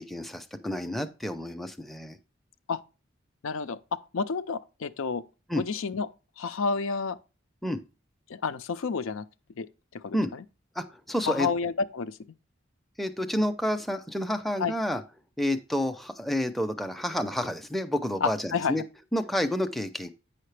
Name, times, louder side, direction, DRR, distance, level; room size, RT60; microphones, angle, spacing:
voice 1, 0.0-2.2 5.5-5.6 7.6-7.8 10.1-10.3 10.8-11.5 13.0-15.0 15.4-18.8 19.1-20.1, equal, ahead, 0.5 m, -29 dB
voice 2, 3.4-3.8 4.1-5.2 5.6-6.1 6.4-7.2 8.3-9.2 9.6-10.4 11.2-12.2 14.6-14.7 18.2-18.8, left 5 dB, 85° left, 0.5 m, -30 dB
8.5 x 5.7 x 3.3 m
head